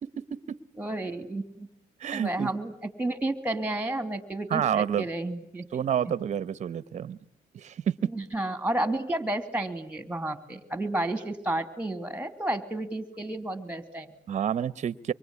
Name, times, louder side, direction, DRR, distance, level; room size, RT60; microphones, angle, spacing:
voice 1, 0.0-0.6 2.0-2.5 4.5-5.1 5.7-7.2 7.5-8.1 14.3-15.1, right 9 dB, 45° right, 18 dB, 1.1 m, -29 dB
voice 2, 0.8-1.7 2.1-2.7 3.0-5.7 8.1-14.1, right 1 dB, 5° right, 11 dB, 2.8 m, -31 dB
25.5 x 23.5 x 9.7 m, 0.67 s
cardioid pair, 110°, 17 cm